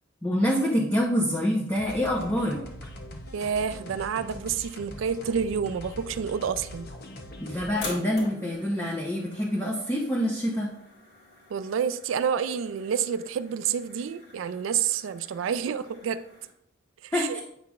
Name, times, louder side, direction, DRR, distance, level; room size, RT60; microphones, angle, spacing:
voice 1, 0.2-2.6 7.4-10.7 17.1-17.4, equal, 15° left, -5 dB, 0.8 m, -26 dB
sound 1, 1.8-7.8, equal, 50° left, 0.8 m, -42 dB
voice 2, 3.3-6.9 11.5-16.2 17.0-17.4, right 7 dB, 85° right, 13 dB, 0.4 m, -29 dB
sound 2, 7.7-16.4, left 1 dB, 70° left, 2.7 m, -46 dB
8.7 x 5.6 x 2.4 m, 0.77 s
head